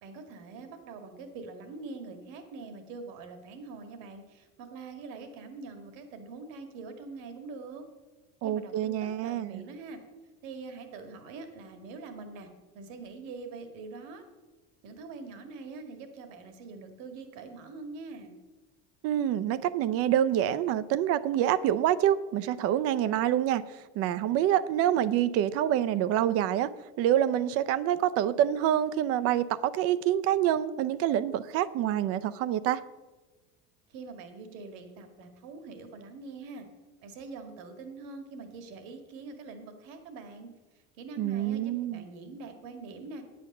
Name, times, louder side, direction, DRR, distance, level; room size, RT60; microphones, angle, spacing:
voice 1, 0.0-7.9 8.4-10.0 10.4-12.5 12.7-14.2 14.8-18.4 33.9-36.7 37.0-40.5 41.0-43.2, right 4 dB, 65° right, 6 dB, 1.9 m, -44 dB
voice 2, 8.4-9.6 19.0-26.7 27.0-32.8 41.2-42.0, right 11 dB, 45° right, 16 dB, 0.6 m, -26 dB
9.4 x 8.7 x 6.6 m, 1.2 s
cardioid pair, 150°, 33 cm